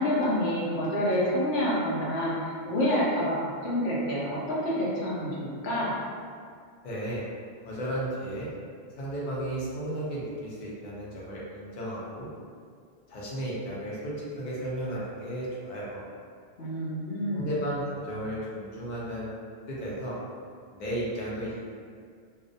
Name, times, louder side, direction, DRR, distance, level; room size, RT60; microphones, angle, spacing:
voice 1, 0.0-5.9 16.6-17.5, equal, 80° left, -6 dB, 0.9 m, -28 dB
voice 2, 6.8-7.2 7.6-8.5 8.9-12.3 13.1-16.0 17.3-19.3 19.7-20.2 20.7-21.6, right 1 dB, 55° left, -6 dB, 0.6 m, -34 dB
2.3 x 2.1 x 2.6 m, 2.2 s
omnidirectional pair, 1.1 m